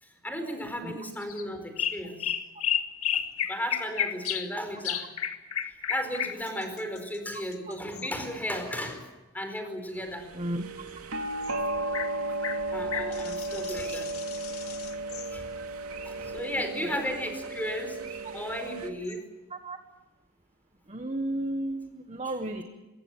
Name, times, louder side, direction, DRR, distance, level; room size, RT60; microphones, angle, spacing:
voice 1, 0.0-2.3 3.1-3.2 3.5-5.1 5.6-9.1 9.3-10.3 11.5-14.1 15.3-15.5 16.0-19.3, equal, 10° left, 7 dB, 4.7 m, -35 dB
sound 1, 1.2-1.4 1.8-4.5 4.8-8.1 11.4-11.5 11.9-12.1 12.4-15.3 18.3-18.4 19.1-19.2, left 9 dB, 75° left, 2.1 m, -32 dB
sound 2, 10.1-18.9, right 2 dB, 80° right, 3.0 m, -34 dB
voice 2, 20.9-22.6, right 1 dB, 30° right, 6 dB, 1.6 m, -33 dB
24.5 x 22.0 x 7.6 m, 1.1 s
head